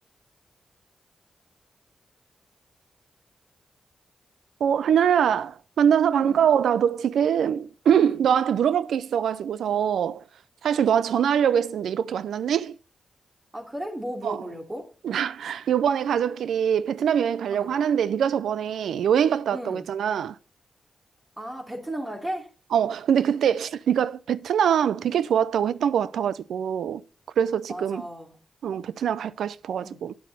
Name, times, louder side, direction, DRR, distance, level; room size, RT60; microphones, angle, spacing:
voice 1, 4.6-10.2 10.6-12.8 14.2-14.4 15.0-20.4 22.7-27.0 27.4-28.0 28.6-30.1, right 8 dB, 85° right, 0.3 m, -23 dB
voice 2, 13.5-14.9 17.5-17.7 19.5-19.8 21.4-22.5 27.7-28.3 29.8-30.0, right 1 dB, 25° right, 2.7 m, -35 dB
8.6 x 8.2 x 4.0 m
cardioid pair, 50°, 0 cm